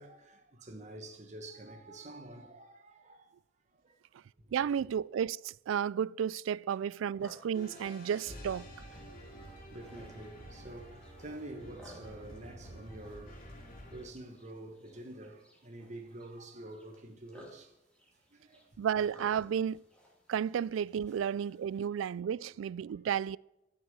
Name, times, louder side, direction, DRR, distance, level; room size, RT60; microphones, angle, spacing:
voice 1, 0.0-3.3 3.8-3.9 4.7-4.9 9.3-13.4 13.9-17.7 18.3-18.7 22.3-22.5, right 1 dB, 40° right, 1.3 m, -48 dB
voice 2, 4.5-8.7 18.8-19.8 20.3-23.4, right 8 dB, 90° right, 0.3 m, -32 dB
sound 1, 7.2-21.8, left 1 dB, 5° left, 2.5 m, -60 dB
sound 2, 7.5-14.1, equal, 45° left, 3.0 m, -49 dB
13.0 x 6.5 x 7.3 m
head